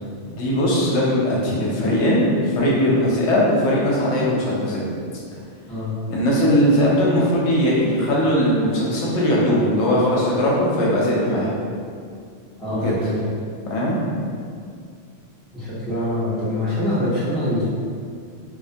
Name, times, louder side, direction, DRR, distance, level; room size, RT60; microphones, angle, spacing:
voice 1, 0.3-4.9 6.1-11.5 12.8-13.0 13.7-14.0, equal, 70° left, -5 dB, 0.8 m, -19 dB
voice 2, 12.6-13.1 15.5-17.6, left 1 dB, ahead, -11 dB, 0.3 m, -24 dB
2.3 x 2.1 x 2.6 m, 2.2 s
omnidirectional pair, 1.3 m